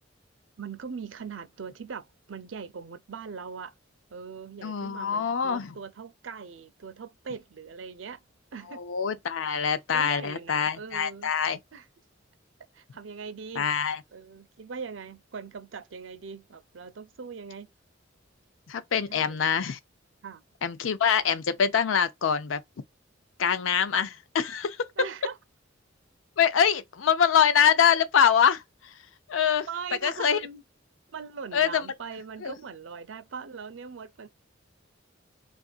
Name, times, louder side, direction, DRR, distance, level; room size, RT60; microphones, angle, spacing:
voice 1, 0.6-3.7 4.1-8.2 8.5-8.8 9.4-11.3 11.7-11.9 12.7-13.7 14.1-17.7 19.1-19.4 20.2-20.4 25.0-25.4 29.7-30.6 31.1-34.3, right 5 dB, 75° right, 0.6 m, -40 dB
voice 2, 4.6-5.7 8.8-11.6 13.6-14.0 18.7-19.8 20.6-22.6 23.4-24.8 26.4-28.6 29.3-29.7 30.0-30.4 31.5-31.9 32.4-32.5, left 7 dB, 85° left, 0.5 m, -24 dB
3.7 x 2.5 x 2.4 m
head